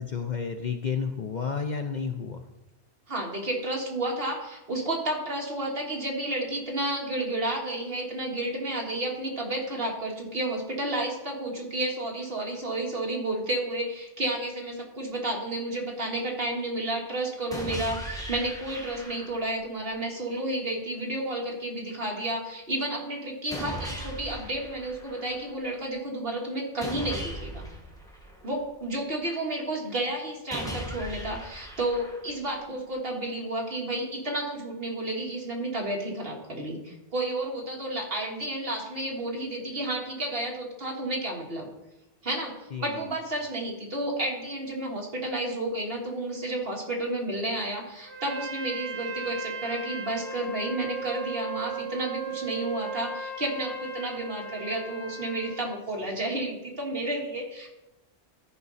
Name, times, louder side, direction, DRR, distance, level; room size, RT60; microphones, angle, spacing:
voice 1, 0.0-2.5 42.7-43.0, left 6 dB, 50° left, 5 dB, 0.6 m, -31 dB
voice 2, 3.1-27.7 28.4-41.7 42.2-42.5 42.8-57.7, right 1 dB, 55° right, -1 dB, 2.1 m, -31 dB
sound 1, 17.5-19.5 23.5-25.5 26.8-28.8 30.5-32.5, equal, 5° left, 1.4 m, -38 dB
Trumpet, 48.1-55.7, right 4 dB, 85° right, 1.8 m, -37 dB
13.5 x 5.3 x 4.1 m, 0.98 s
omnidirectional pair, 1.2 m